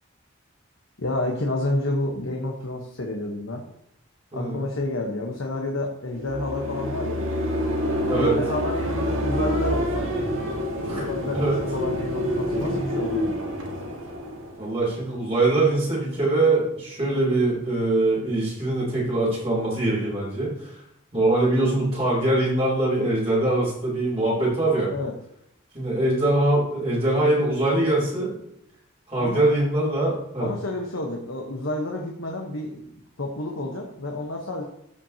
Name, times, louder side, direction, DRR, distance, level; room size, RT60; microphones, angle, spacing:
voice 1, 1.0-3.6 4.3-7.2 8.1-10.1 10.9-13.4 24.9-25.1 29.2-29.5 30.4-34.6, left 2 dB, 85° left, 0 dB, 1.2 m, -30 dB
sound 1, 6.1-15.1, equal, 85° right, 1.7 m, -27 dB
voice 2, 10.9-11.6 14.6-20.8 21.1-24.9 25.7-28.3 29.1-30.5, right 2 dB, 30° right, -6 dB, 3.7 m, -23 dB
14.0 x 5.8 x 2.9 m, 0.79 s
head